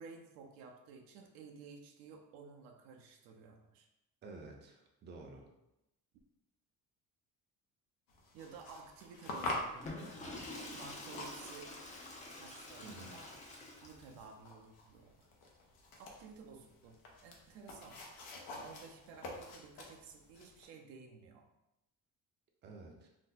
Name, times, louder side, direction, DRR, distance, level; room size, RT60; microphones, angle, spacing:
voice 1, 0.0-3.9 8.3-11.7 12.3-13.3 13.8-15.3 16.0-17.0 17.2-18.0 18.5-21.5, right 5 dB, 85° right, 2 dB, 0.6 m, -54 dB
voice 2, 4.2-5.5 12.8-13.1 22.6-23.1, right 3 dB, 30° right, 1 dB, 0.5 m, -51 dB
sound 1, 8.1-20.7, left 2 dB, 85° left, 0.7 m, -47 dB
Water / Toilet flush, 9.7-14.2, left 2 dB, 20° left, 0.5 m, -48 dB
2.7 x 2.1 x 3.9 m, 0.90 s
cardioid pair, 120°, 35 cm